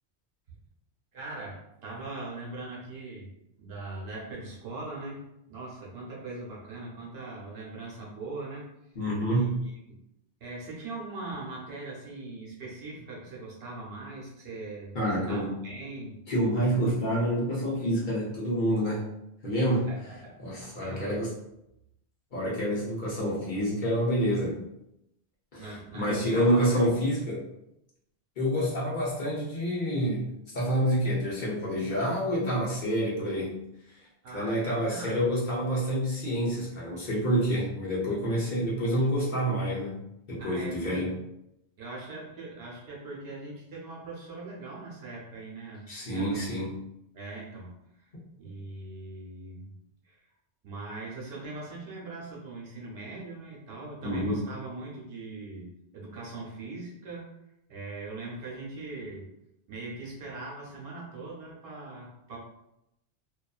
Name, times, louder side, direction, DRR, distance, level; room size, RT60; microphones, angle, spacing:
voice 1, 1.1-3.3 3.6-5.2 5.5-8.9 9.3-10.0 10.4-16.2 19.9-20.4 20.8-21.2 25.6-26.9 34.2-35.3 40.4-41.1 41.8-46.5 47.1-48.1 48.4-49.7 50.0-50.2 50.6-57.3 57.7-59.3 59.7-62.4, right 2 dB, 65° right, -5 dB, 1.0 m, -40 dB
voice 2, 9.0-9.6 14.9-15.6 16.3-19.0 19.4-19.9 20.4-21.3 22.3-24.6 25.5-27.4 28.4-33.6 33.9-34.0 34.3-40.0 40.3-41.1 45.9-46.8 54.0-54.4, equal, 50° left, -6 dB, 0.8 m, -28 dB
2.5 x 2.3 x 2.3 m, 0.84 s
omnidirectional pair, 1.2 m